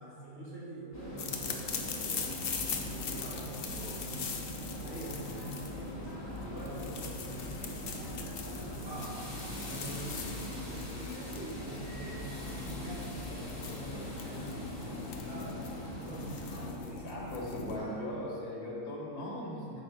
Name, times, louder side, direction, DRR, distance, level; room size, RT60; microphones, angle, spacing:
voice 1, 0.0-2.4 2.7-8.3 8.8-9.2 9.7-18.3, right 1 dB, 40° right, -7 dB, 1.9 m, -46 dB
sound 1, 0.9-16.7, equal, 10° left, 1.2 m, -42 dB
sound 2, 1.2-17.8, left 5 dB, 55° left, 0.7 m, -41 dB
voice 2, 17.0-19.8, left 1 dB, 80° left, -4 dB, 2.0 m, -39 dB
7.0 x 4.4 x 5.7 m, 2.5 s
omnidirectional pair, 1.6 m